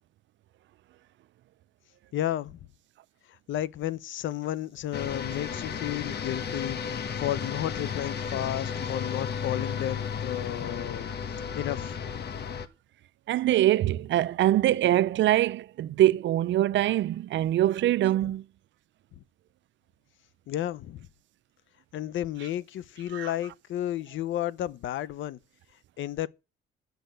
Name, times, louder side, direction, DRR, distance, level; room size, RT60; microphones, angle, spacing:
voice 1, 2.1-2.6 3.5-12.0 19.2-19.3 20.5-21.1 21.9-25.4 26.0-26.3, left 12 dB, 75° left, 0.7 m, -33 dB
sound 1, 4.9-12.7, left 7 dB, 55° left, 1.3 m, -33 dB
voice 2, 13.3-18.5 23.1-23.3, right 13 dB, 70° right, 0.5 m, -23 dB
10.5 x 6.4 x 7.8 m
cardioid pair, 90°, 20 cm